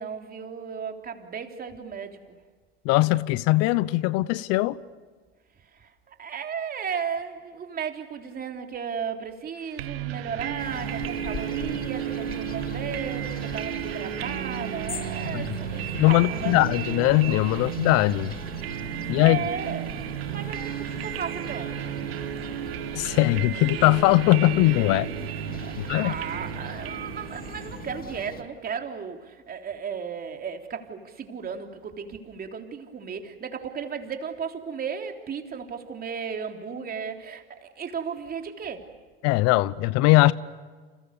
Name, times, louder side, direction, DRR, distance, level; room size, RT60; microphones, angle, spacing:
voice 1, 0.0-2.4 5.7-16.6 19.1-21.8 25.6-38.9, right 6 dB, 30° right, 3.5 m, -35 dB
voice 2, 2.8-4.8 15.3-15.5 15.9-18.3 19.1-19.4 22.9-25.1 25.8-26.1 39.2-40.3, left 18 dB, 55° left, 1.0 m, -20 dB
sound 1, 9.8-28.5, right 12 dB, 80° right, 2.0 m, -33 dB
sound 2, 10.6-28.4, left 6 dB, 30° left, 2.3 m, -41 dB
30.0 x 28.5 x 6.9 m
hypercardioid pair, 95°, 30 cm